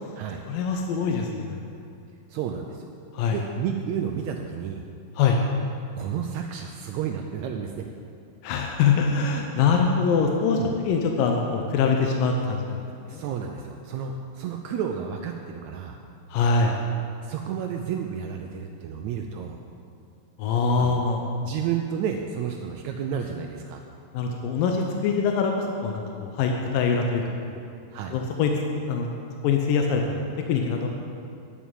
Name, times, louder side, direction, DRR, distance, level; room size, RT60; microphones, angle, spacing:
voice 1, 0.5-1.6 3.1-3.4 5.2-5.4 8.4-13.2 16.3-16.8 20.4-21.2 24.1-27.6 28.1-28.5 28.9-29.1 29.4-30.9, left 5 dB, 80° left, 2 dB, 2.5 m, -24 dB
voice 2, 2.3-2.9 3.3-4.8 5.9-7.8 10.6-10.7 13.1-16.0 17.2-19.6 20.8-21.0 21.4-23.8 27.9-28.2, right 8 dB, 85° right, 3 dB, 1.6 m, -31 dB
10.5 x 7.1 x 8.9 m, 2.5 s
omnidirectional pair, 4.0 m